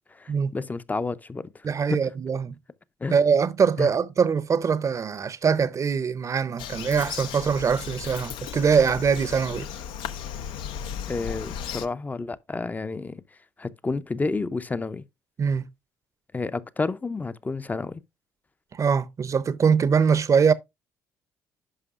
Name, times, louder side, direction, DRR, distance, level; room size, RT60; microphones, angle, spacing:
voice 1, 0.0-2.0 3.0-3.2 3.8-3.9 11.1-13.2 13.6-15.0 16.3-18.0, left 3 dB, 20° left, 0.5 m, -30 dB
voice 2, 1.6-2.6 3.1-9.7 15.4-15.7 18.7-20.5, right 6 dB, 35° right, 0.6 m, -23 dB
Bird vocalization bird call bird song, 6.6-11.9, left 8 dB, 75° left, 0.6 m, -35 dB
11.0 x 5.3 x 2.4 m
supercardioid pair, 75°, 8 cm